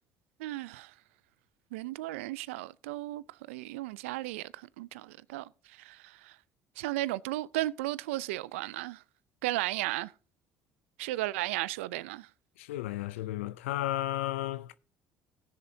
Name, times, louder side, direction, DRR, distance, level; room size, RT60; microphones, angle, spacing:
voice 1, 0.4-0.9 1.7-6.4 6.8-9.0 9.4-10.1 11.0-12.3, right 17 dB, 85° right, 0.4 m, -35 dB
voice 2, 12.6-14.7, left 14 dB, 85° left, 0.4 m, -33 dB
19.0 x 6.9 x 2.7 m
hypercardioid pair, 60°, 7 cm